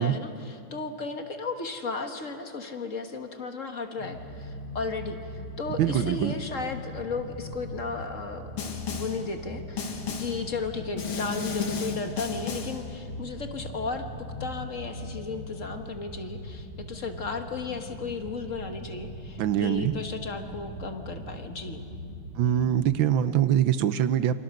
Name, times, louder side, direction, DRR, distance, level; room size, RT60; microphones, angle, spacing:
voice 1, 0.0-14.1 14.4-21.8, left 4 dB, 40° left, 5 dB, 1.6 m, -35 dB
sound 1, 4.0-22.7, left 1 dB, 85° right, 6.5 m, -40 dB
voice 2, 5.8-6.4 19.4-20.0 22.3-24.4, right 10 dB, 70° right, 13 dB, 1.4 m, -24 dB
Snare drum, 8.6-9.3 9.8-10.5 11.0-12.9, left 5 dB, 70° left, 2.6 m, -33 dB
28.0 x 25.5 x 6.6 m, 2.7 s
omnidirectional pair, 2.4 m